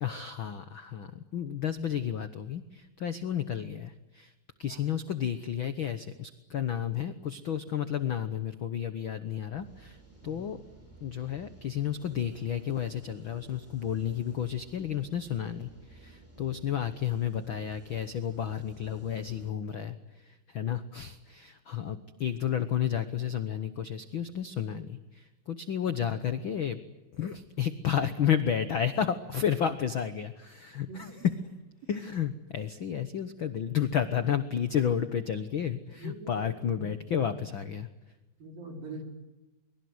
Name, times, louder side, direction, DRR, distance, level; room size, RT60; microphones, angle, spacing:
voice 1, 0.0-4.3 4.6-10.6 11.0-26.8 27.1-31.3 31.9-37.9, left 9 dB, 75° left, 11 dB, 1.1 m, -32 dB
sound 1, 9.5-19.5, right 1 dB, 5° right, 7.3 m, -54 dB
voice 2, 36.0-37.4 38.4-39.0, right 2 dB, 75° right, 4 dB, 5.9 m, -43 dB
24.0 x 23.5 x 9.6 m, 1.1 s
omnidirectional pair, 4.0 m